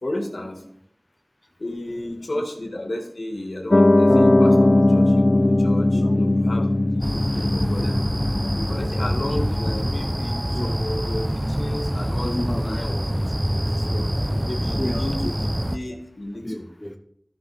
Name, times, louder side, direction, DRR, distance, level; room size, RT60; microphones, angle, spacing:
voice 1, 0.0-0.6 1.6-8.2 8.7-13.0 13.5-14.0 14.4-15.3 15.7-16.7, left 1 dB, 80° left, 1 dB, 1.7 m, -33 dB
voice 2, 2.0-2.4 4.5-4.6 5.3-5.5 5.9-6.8 8.1-8.7 10.6-11.4 12.1-13.3 13.9-14.1 14.7-15.3 16.4-17.0, left 1 dB, 25° left, 3 dB, 0.9 m, -34 dB
Piano, 3.7-10.3, left 1 dB, 55° left, 0.3 m, -19 dB
sound 1, 7.0-15.8, equal, 15° right, 0.6 m, -26 dB
13.5 x 5.8 x 3.4 m, 0.70 s
wide cardioid pair, 40°, 0 cm